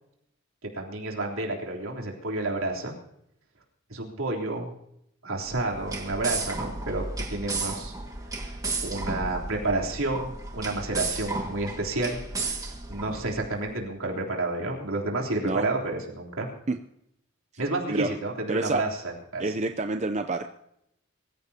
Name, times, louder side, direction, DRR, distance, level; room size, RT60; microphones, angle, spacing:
voice 1, 0.6-3.0 3.9-4.7 5.2-7.9 8.4-8.6 8.8-12.2 12.6-16.5 17.6-19.4, right 2 dB, 70° right, -1 dB, 3.5 m, -30 dB
sound 1, 5.4-13.6, right 3 dB, 15° right, 1.9 m, -34 dB
voice 2, 18.5-18.8 19.4-20.5, right 3 dB, 30° right, 6 dB, 0.6 m, -28 dB
24.0 x 15.0 x 2.9 m, 0.78 s
head